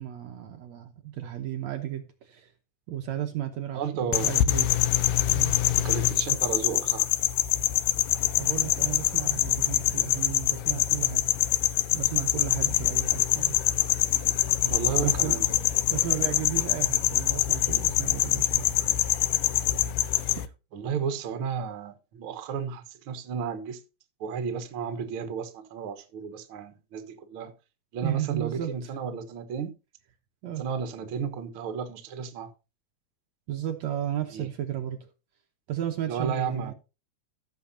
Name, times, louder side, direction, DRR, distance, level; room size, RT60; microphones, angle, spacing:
voice 1, 0.0-2.5 2.9-4.7 5.3-5.5 8.4-11.2 11.9-13.6 15.0-15.4 15.9-18.7 28.0-28.9 30.4-30.6 33.5-35.1 35.7-36.7, right 11 dB, 70° right, 2.0 m, -34 dB
voice 2, 3.7-4.3 5.8-7.1 14.6-15.5 20.7-23.8 24.2-27.5 27.9-29.7 30.6-32.5 34.3-34.5 36.1-36.7, right 6 dB, 55° right, 1.7 m, -33 dB
sound 1, 4.1-20.5, left 14 dB, 85° left, 2.3 m, -25 dB
15.5 x 7.0 x 2.8 m
omnidirectional pair, 3.7 m